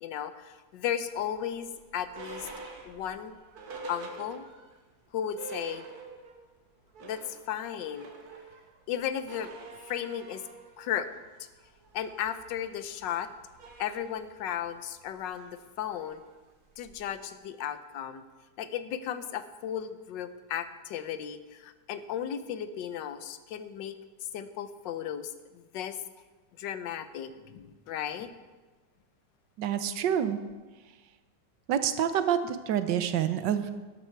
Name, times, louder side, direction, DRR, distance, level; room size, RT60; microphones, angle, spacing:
voice 1, 0.0-2.5 2.8-3.4 3.9-4.4 5.1-5.9 7.0-8.1 8.9-9.5 9.8-10.4 10.8-11.1 11.9-13.3 13.8-16.2 16.8-18.2 18.6-24.0 24.3-26.0 26.6-28.3, left 9 dB, 80° left, 11 dB, 1.4 m, -35 dB
sound 1, 1.1-4.8 5.1-5.2 5.4-6.4 6.8-17.2, right 3 dB, 60° right, 1.8 m, -47 dB
voice 2, 29.6-30.4 31.7-33.7, right 9 dB, 75° right, 10 dB, 1.5 m, -27 dB
12.5 x 12.0 x 4.6 m, 1.3 s
omnidirectional pair, 1.9 m